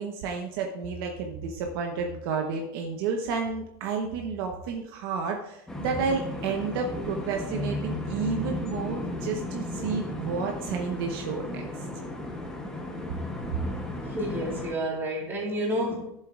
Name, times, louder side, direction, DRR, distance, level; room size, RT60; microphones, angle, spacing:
voice 1, 0.0-11.8 13.5-13.6, right 5 dB, 60° right, 2 dB, 1.0 m, -31 dB
sound 1, 5.7-14.7, left 1 dB, 5° left, 0.9 m, -35 dB
voice 2, 14.1-16.1, equal, 15° right, -5 dB, 2.3 m, -30 dB
13.5 x 7.6 x 2.5 m, 0.81 s
supercardioid pair, 175°, 14 cm